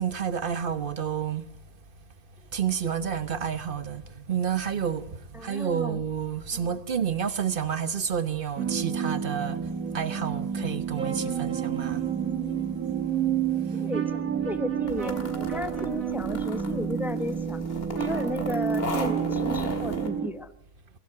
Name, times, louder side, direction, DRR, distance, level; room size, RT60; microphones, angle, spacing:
voice 1, 0.0-1.4 2.5-12.0 13.8-13.9, right 8 dB, 40° right, 1.2 m, -30 dB
voice 2, 5.3-6.0 6.5-6.7 13.7-17.6 17.9-20.5, left 2 dB, ahead, 0.9 m, -34 dB
sound 1, 8.6-20.3, right 8 dB, 70° right, 2.3 m, -29 dB
sound 2, 14.9-20.1, left 2 dB, 45° left, 2.4 m, -37 dB
23.0 x 17.0 x 8.5 m
omnidirectional pair, 1.5 m